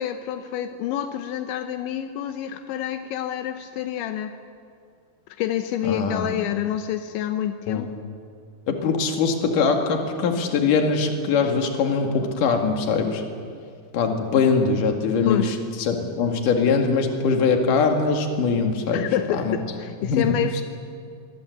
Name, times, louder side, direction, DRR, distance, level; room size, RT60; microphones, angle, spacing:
voice 1, 0.0-4.3 5.4-8.1 15.2-15.6 18.9-20.6, left 11 dB, 80° left, 8 dB, 3.1 m, -28 dB
voice 2, 5.9-6.3 7.7-7.9 8.7-13.2 13.9-19.6 20.1-20.4, left 5 dB, 55° left, 3 dB, 3.3 m, -22 dB
25.5 x 22.5 x 8.1 m, 2.2 s
omnidirectional pair, 5.3 m